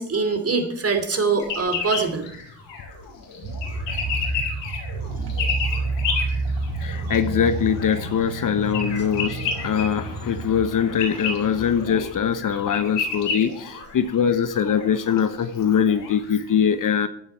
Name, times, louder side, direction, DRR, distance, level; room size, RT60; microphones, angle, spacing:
voice 1, 0.0-2.3, right 4 dB, 30° right, 7 dB, 3.0 m, -23 dB
sound 1, 1.4-2.0 3.6-4.8 5.4-6.2 8.7-9.8 11.0-11.3 12.3-12.4 12.7-13.4, left 6 dB, 90° left, 2.4 m, -27 dB
sound 2, 1.4-16.4, left 3 dB, 65° left, 5.7 m, -43 dB
sound 3, 3.4-12.3, right 3 dB, 55° right, 3.2 m, -30 dB
voice 2, 6.8-17.1, left 7 dB, 40° left, 11 dB, 1.1 m, -22 dB
15.0 x 9.7 x 4.6 m, 0.69 s
hypercardioid pair, 60°, 48 cm